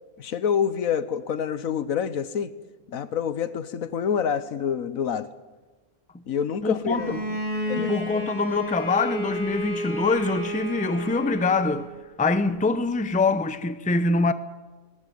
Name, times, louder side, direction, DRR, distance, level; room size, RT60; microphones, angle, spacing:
voice 1, 0.2-2.5 2.9-5.3 6.3-7.2 7.7-7.9, left 7 dB, 70° left, 1.4 m, -27 dB
voice 2, 6.6-7.2 7.8-11.9 12.2-14.3, left 3 dB, 5° left, 0.6 m, -24 dB
Bowed string instrument, 6.9-12.0, equal, 35° left, 4.4 m, -31 dB
20.0 x 18.0 x 9.4 m
omnidirectional pair, 1.5 m